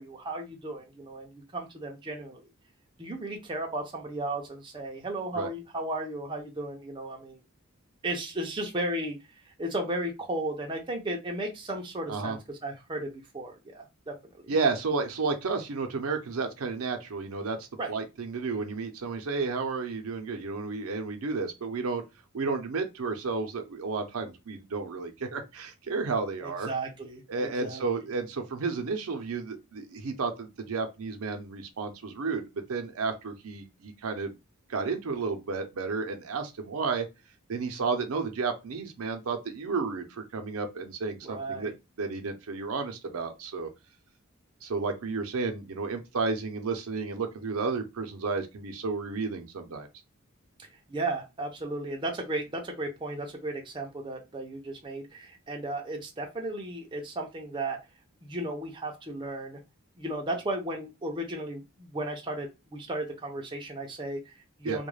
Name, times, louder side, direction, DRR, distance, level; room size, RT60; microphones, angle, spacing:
voice 1, 0.0-2.4 3.0-7.4 8.0-9.2 9.4-14.1 14.4-14.5 17.8-17.9 26.4-28.0 41.2-41.7 50.6-57.8 58.2-59.6 60.0-64.9, right 1 dB, 20° right, 0.4 m, -35 dB
voice 2, 14.5-22.0 22.3-26.7 27.3-34.3 34.7-37.1 37.5-43.7 44.6-49.9 64.6-64.8, right 4 dB, 75° right, 0.5 m, -32 dB
2.3 x 2.1 x 3.1 m
head